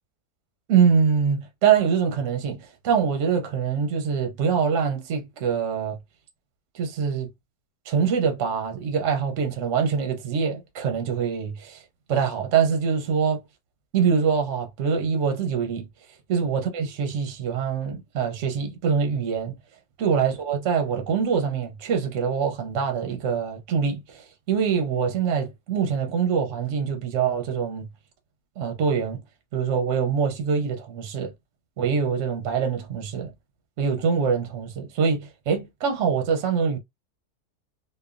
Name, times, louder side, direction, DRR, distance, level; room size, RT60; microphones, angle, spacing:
voice 1, 0.7-6.0 6.7-7.3 7.9-11.8 12.1-13.4 13.9-15.9 16.3-19.6 20.0-27.9 28.6-29.2 29.5-31.3 31.8-33.3 33.8-36.8, right 6 dB, 65° right, 0.8 m, -24 dB
3.0 x 2.1 x 2.4 m
omnidirectional pair, 1.7 m